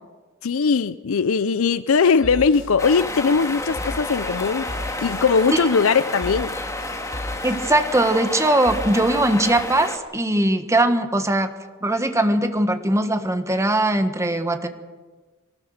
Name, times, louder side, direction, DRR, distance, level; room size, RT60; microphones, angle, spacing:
voice 1, 0.4-4.7 5.0-6.5, left 5 dB, 85° left, 15 dB, 0.5 m, -20 dB
sound 1, 2.2-9.6, left 1 dB, 65° left, 3.6 m, -37 dB
sound 2, 2.8-10.0, left 2 dB, 15° left, 1.8 m, -30 dB
voice 2, 7.4-11.5 11.8-14.7, right 1 dB, 15° right, 8 dB, 1.5 m, -20 dB
24.0 x 19.0 x 6.5 m, 1.3 s
head